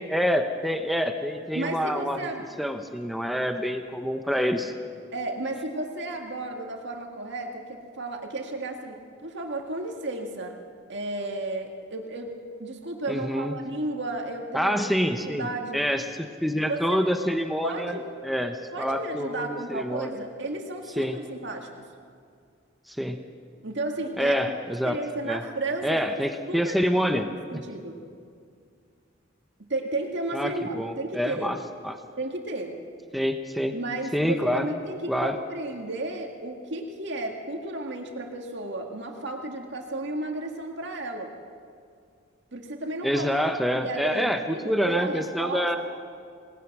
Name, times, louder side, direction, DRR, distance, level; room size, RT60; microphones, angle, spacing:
voice 1, 0.0-2.3 2.6-4.7 13.1-13.5 14.5-15.5 15.7-18.0 18.2-20.2 21.0-21.2 22.9-23.2 24.2-25.0 25.2-25.4 25.8-27.3 30.3-31.6 31.8-32.0 33.1-33.7 34.1-34.7 35.1-35.3 43.0-45.8, equal, ahead, 5 dB, 0.9 m, -26 dB
voice 2, 1.5-2.4 5.1-10.6 10.9-12.3 12.6-15.0 15.2-15.8 16.5-17.0 17.6-18.1 18.7-21.8 23.6-28.0 29.6-31.6 32.2-32.8 33.7-41.3 42.5-43.3 43.7-45.8, right 2 dB, 65° right, 2 dB, 2.1 m, -33 dB
27.5 x 19.0 x 6.1 m, 2.2 s
head